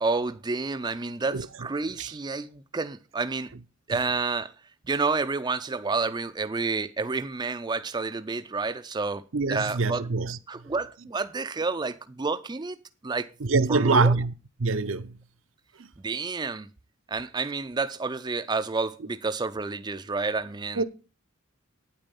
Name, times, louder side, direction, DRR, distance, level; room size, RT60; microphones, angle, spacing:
voice 1, 0.0-3.5 3.9-4.5 4.9-9.2 9.5-10.1 10.5-13.3 13.7-14.2 16.0-16.7 17.1-20.8, right 4 dB, 20° right, 0.4 m, -29 dB
voice 2, 9.3-10.4 13.4-14.3 14.6-15.2 15.8-15.9 20.8-20.9, right 3 dB, 70° right, 0.7 m, -24 dB
9.1 x 8.8 x 5.3 m
head